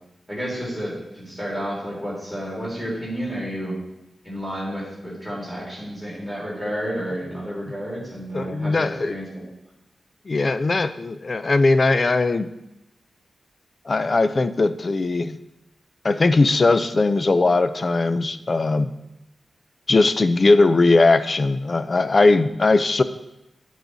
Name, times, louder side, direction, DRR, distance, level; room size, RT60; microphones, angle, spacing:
voice 1, 0.3-3.7 4.2-9.5, equal, ahead, -6 dB, 3.2 m, -31 dB
voice 2, 8.3-9.1 10.3-12.5 13.9-15.4 16.0-18.9 19.9-23.0, left 3 dB, 35° left, 12 dB, 0.4 m, -19 dB
13.0 x 4.8 x 4.0 m, 0.90 s
wide cardioid pair, 170°, 0 cm